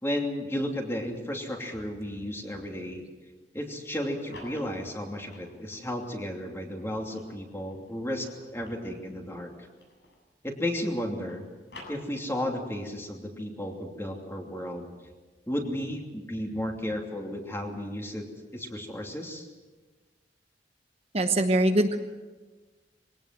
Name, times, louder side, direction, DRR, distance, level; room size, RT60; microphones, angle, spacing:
voice 1, 0.0-3.0 3.5-9.7 10.4-11.5 11.9-14.9 15.5-18.3 18.5-19.5, left 1 dB, 15° left, 2 dB, 2.8 m, -33 dB
sound 1, 3.9-6.0 6.6-10.3 10.6-12.6, left 2 dB, 70° left, 7.9 m, -51 dB
voice 2, 21.1-22.0, right 1 dB, 35° right, 5 dB, 1.0 m, -22 dB
22.5 x 18.0 x 7.6 m, 1.3 s
head